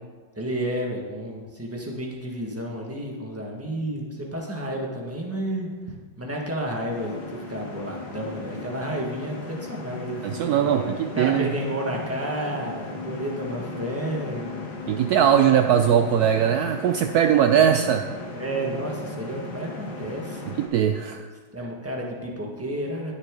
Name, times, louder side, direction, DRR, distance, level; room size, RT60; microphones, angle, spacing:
voice 1, 0.4-5.7 6.2-14.7 18.3-20.5 21.5-23.1, right 1 dB, 10° right, -1 dB, 1.4 m, -31 dB
sound 1, 6.9-20.7, left 3 dB, 55° left, 2.1 m, -37 dB
voice 2, 10.2-11.5 14.9-18.1 20.6-21.3, right 9 dB, 80° right, 7 dB, 0.8 m, -20 dB
19.5 x 6.6 x 3.8 m, 1.5 s
omnidirectional pair, 2.1 m